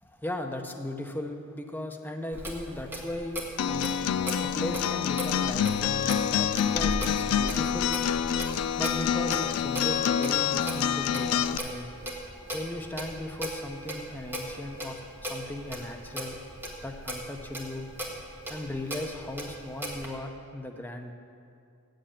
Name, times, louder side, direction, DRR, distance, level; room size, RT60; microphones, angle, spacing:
voice 1, 0.0-4.0 4.4-7.9 8.8-11.9 12.5-16.4 16.8-17.9 18.5-21.1, left 1 dB, 10° left, 3 dB, 0.6 m, -37 dB
Clock, 2.3-20.1, equal, 10° right, 1.2 m, -38 dB
Acoustic guitar, 3.6-11.6, left 9 dB, 80° left, 0.3 m, -27 dB
7.8 x 7.4 x 8.6 m, 2.5 s
head